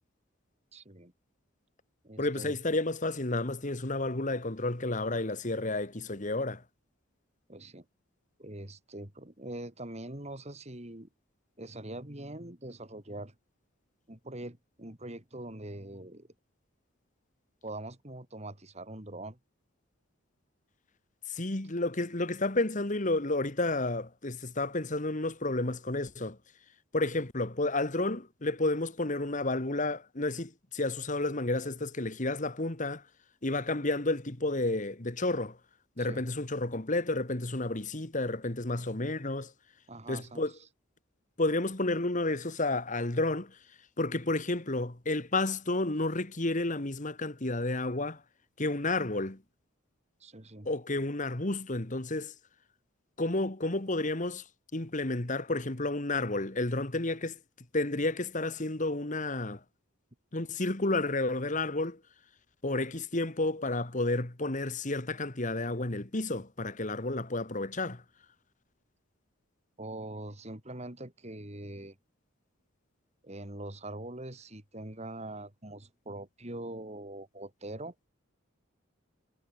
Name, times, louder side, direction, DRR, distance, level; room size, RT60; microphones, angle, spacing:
voice 1, 0.7-1.1 2.0-2.6 7.5-7.8 8.4-11.1 11.6-13.3 14.1-16.3 17.6-19.4 36.0-36.2 39.9-40.4 50.2-50.7 69.8-71.9 73.2-77.9, right 1 dB, 35° right, 3.2 m, -43 dB
voice 2, 2.2-6.6 21.3-26.4 26.9-33.0 33.4-35.6 36.0-39.5 40.1-40.5 41.4-43.6 44.0-48.2 48.6-49.4 50.6-52.3 53.2-54.4 54.7-57.4 57.7-59.6 60.3-62.0 62.6-68.0, left 2 dB, 40° left, 1.7 m, -31 dB
head